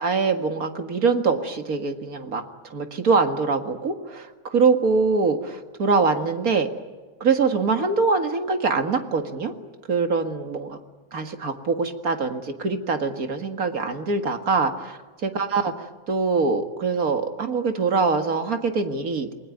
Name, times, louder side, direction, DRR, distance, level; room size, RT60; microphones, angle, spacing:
voice 1, 0.0-2.4 2.7-6.7 7.2-9.5 9.9-10.8 11.1-15.7 16.1-19.3, right 4 dB, 35° right, 6 dB, 1.7 m, -23 dB
28.0 x 20.5 x 9.4 m, 1.4 s
omnidirectional pair, 3.5 m